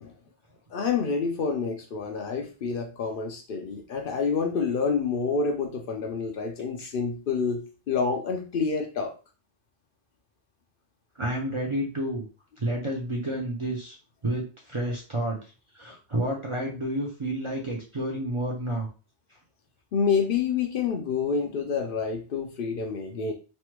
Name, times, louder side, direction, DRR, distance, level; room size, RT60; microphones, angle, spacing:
voice 1, 0.7-9.1 19.9-23.3, left 5 dB, 60° left, 3 dB, 0.6 m, -28 dB
voice 2, 11.2-12.2 12.6-14.0 14.2-15.4 15.7-18.9, right 1 dB, 40° right, -1 dB, 0.5 m, -30 dB
3.2 x 2.1 x 3.0 m, 0.34 s
omnidirectional pair, 1.1 m